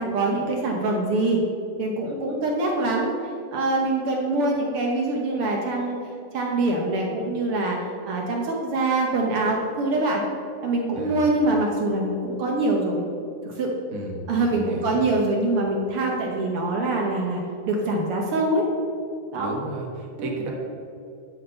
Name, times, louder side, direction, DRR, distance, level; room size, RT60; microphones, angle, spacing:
voice 1, 0.0-1.4 1.8-3.1 3.5-6.0 6.3-7.8 8.1-10.2 10.6-13.0 13.4-13.7 14.3-17.4 17.7-18.7 19.3-19.5 20.2-20.4, right 2 dB, 70° right, 0 dB, 1.3 m, -24 dB
voice 2, 13.9-15.0 19.3-20.5, right 2 dB, 85° right, -1 dB, 0.7 m, -33 dB
10.0 x 4.3 x 6.7 m, 2.5 s
omnidirectional pair, 3.6 m